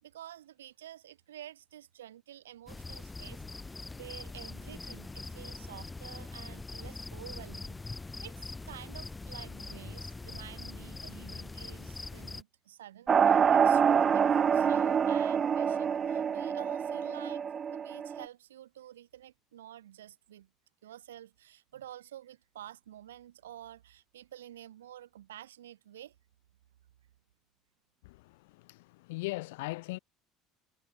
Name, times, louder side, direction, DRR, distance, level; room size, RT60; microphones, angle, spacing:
voice 1, 0.0-3.4 3.9-7.8 8.2-14.3 14.5-20.5 20.8-26.1, right 12 dB, 85° right, 4.1 m, -50 dB
sound 1, 2.7-12.4, left 3 dB, 15° left, 5.0 m, -43 dB
sound 2, 13.1-18.3, right 7 dB, 40° right, 0.6 m, -26 dB
voice 2, 28.0-30.0, left 22 dB, 75° left, 3.1 m, -39 dB
hypercardioid pair, 75°, 0 cm